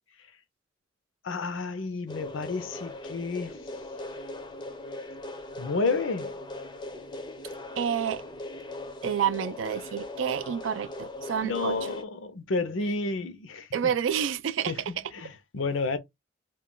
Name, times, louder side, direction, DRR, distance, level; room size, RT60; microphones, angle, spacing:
voice 1, 1.2-3.6 5.6-6.3 11.4-13.9 14.7-16.0, left 3 dB, 80° left, 0.6 m, -31 dB
sound 1, 2.1-12.0, left 2 dB, 25° left, 0.5 m, -39 dB
voice 2, 7.8-8.2 9.0-11.8 13.7-15.1, right 8 dB, 75° right, 0.3 m, -29 dB
2.3 x 2.2 x 3.7 m
head